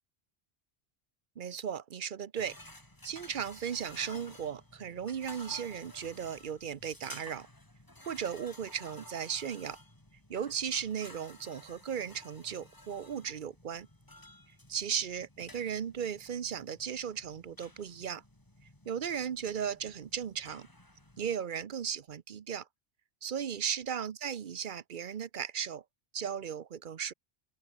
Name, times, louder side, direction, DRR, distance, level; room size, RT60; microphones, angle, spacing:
voice 1, 1.4-2.6 3.0-7.5 8.1-9.8 10.3-13.9 14.7-18.2 18.9-20.7 21.2-22.7 23.2-25.8 26.1-27.1, right 8 dB, 55° right, 0.8 m, -36 dB
sound 1, 2.4-21.3, left 1 dB, 20° left, 2.7 m, -54 dB
open air
omnidirectional pair, 1.1 m